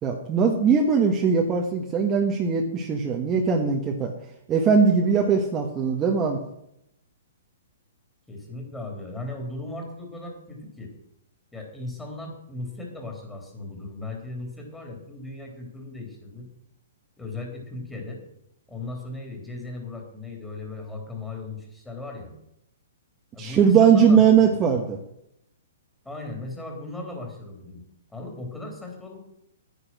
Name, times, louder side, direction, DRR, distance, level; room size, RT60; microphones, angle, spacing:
voice 1, 0.0-4.1 4.5-6.4 23.4-25.0, right 6 dB, 20° right, 0 dB, 1.5 m, -20 dB
voice 2, 8.3-10.9 11.5-16.5 17.2-18.2 18.7-22.3 23.3-24.2 26.0-27.8 28.1-29.2, left 2 dB, 5° left, 1 dB, 3.6 m, -37 dB
10.0 x 10.0 x 6.1 m, 0.77 s
hypercardioid pair, 140°, 0 cm